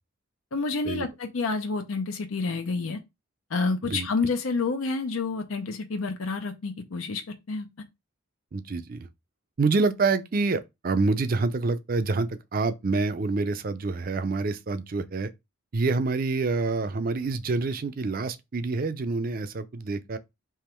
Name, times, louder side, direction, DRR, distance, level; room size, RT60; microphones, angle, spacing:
voice 1, 0.5-3.0 3.5-7.2 7.5-7.7, left 4 dB, 85° left, 0.6 m, -29 dB
voice 2, 8.5-9.1 9.6-15.3 15.7-20.2, right 3 dB, 45° right, 0.4 m, -27 dB
3.5 x 2.9 x 4.3 m
head